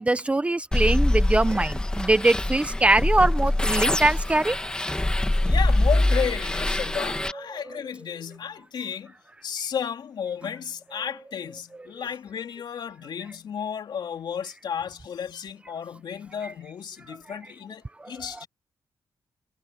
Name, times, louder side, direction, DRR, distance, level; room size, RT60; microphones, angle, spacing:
voice 1, 0.0-4.6 7.5-7.6 18.0-18.1, right 2 dB, 15° right, 0.8 m, -22 dB
sound 1, 0.7-7.3, left 1 dB, 10° left, 2.3 m, -24 dB
voice 2, 5.3-9.1 9.4-18.5, left 7 dB, 60° left, 3.2 m, -33 dB
wide cardioid pair, 145°, 8 cm